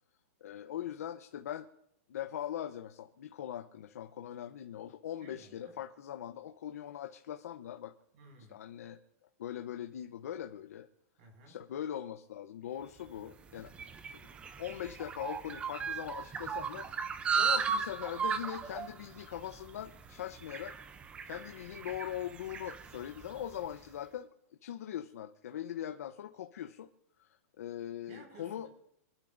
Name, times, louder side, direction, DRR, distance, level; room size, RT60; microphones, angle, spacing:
voice 1, 0.4-1.7 2.1-7.9 8.5-9.0 9.4-10.9 11.5-13.7 14.1-14.2 14.6-16.9 17.4-20.8 21.2-24.3 24.6-26.9 27.2-28.7, left 11 dB, 75° left, 7 dB, 0.8 m, -41 dB
voice 2, 5.2-5.8 8.1-8.6 11.2-11.6 28.1-28.7, right 2 dB, 45° right, 2 dB, 5.7 m, -56 dB
sound 1, 13.1-23.7, right 6 dB, 15° right, 0.5 m, -37 dB
27.5 x 12.0 x 2.6 m, 0.78 s
supercardioid pair, 165°, 8 cm